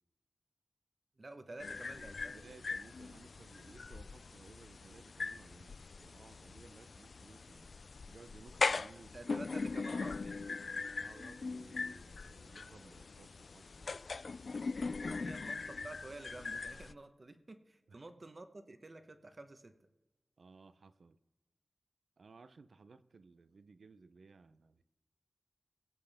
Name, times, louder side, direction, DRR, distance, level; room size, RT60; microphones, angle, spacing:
voice 1, 1.2-2.3 9.1-10.5 15.2-15.5 15.8-19.8, right 2 dB, 40° right, 7 dB, 1.1 m, -50 dB
sound 1, 1.6-16.9, left 4 dB, 65° left, 0.3 m, -41 dB
voice 2, 2.3-7.7 8.1-9.1 11.0-14.0 14.8-15.4 17.9-18.0 20.4-21.2 22.2-24.8, right 4 dB, 75° right, 13 dB, 0.7 m, -59 dB
22.5 x 8.0 x 3.6 m, 1.1 s
wide cardioid pair, 90°, 0 cm